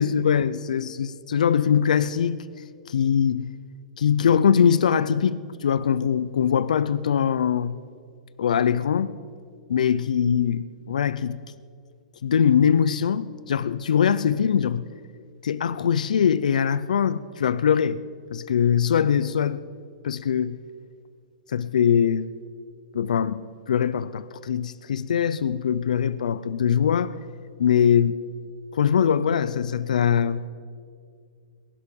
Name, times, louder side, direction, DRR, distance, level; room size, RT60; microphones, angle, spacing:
voice 1, 0.0-2.4 2.9-3.5 4.0-7.8 8.4-9.1 9.7-11.4 12.2-14.9 15.4-18.0 18.3-19.6 20.0-20.6 21.5-22.3 22.9-23.4 23.7-27.1 27.6-28.2 28.7-30.4, left 8 dB, 85° left, 0.5 m, -22 dB
19.0 x 11.5 x 5.4 m
hypercardioid pair, 135°, 4 cm